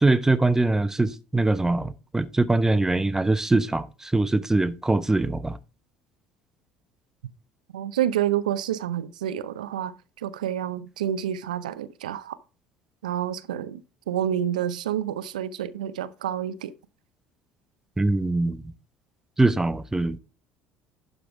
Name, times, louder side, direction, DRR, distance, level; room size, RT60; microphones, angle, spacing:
voice 1, 0.0-5.6 18.0-18.7 19.4-20.2, right 2 dB, 10° right, 0.9 m, -23 dB
voice 2, 7.7-12.4 13.0-13.8 14.1-16.7, right 10 dB, 85° right, 0.6 m, -28 dB
11.5 x 5.2 x 3.4 m
hypercardioid pair, 65°, 4 cm